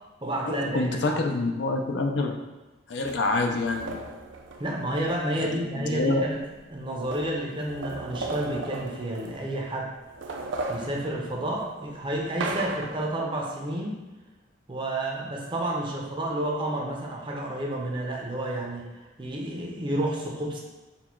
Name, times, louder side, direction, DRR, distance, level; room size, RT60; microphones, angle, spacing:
voice 1, 0.2-1.2 4.6-6.4 6.7-9.9 10.7-14.0 14.7-20.6, right 1 dB, 25° right, -1 dB, 0.6 m, -30 dB
voice 2, 0.7-2.4 2.9-4.1 5.4-6.2, left 3 dB, 60° left, 3 dB, 0.4 m, -27 dB
sound 1, 3.0-5.2 6.2-6.3 6.6-9.7 10.0-13.2, right 3 dB, 75° right, 0.4 m, -36 dB
4.2 x 2.2 x 4.3 m, 1.1 s
head